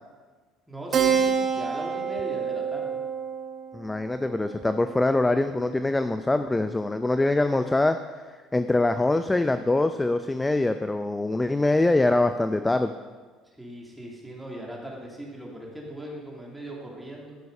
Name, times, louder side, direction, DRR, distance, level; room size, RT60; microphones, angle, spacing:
voice 1, 0.7-3.0 13.6-17.4, right 1 dB, 5° right, -2 dB, 2.9 m, -39 dB
Keyboard (musical), 0.9-5.9, right 7 dB, 40° right, 1.1 m, -28 dB
voice 2, 3.7-8.0 8.5-12.9, left 2 dB, 10° left, 9 dB, 0.5 m, -23 dB
12.5 x 6.8 x 5.5 m, 1.4 s
supercardioid pair, 100°, 0 cm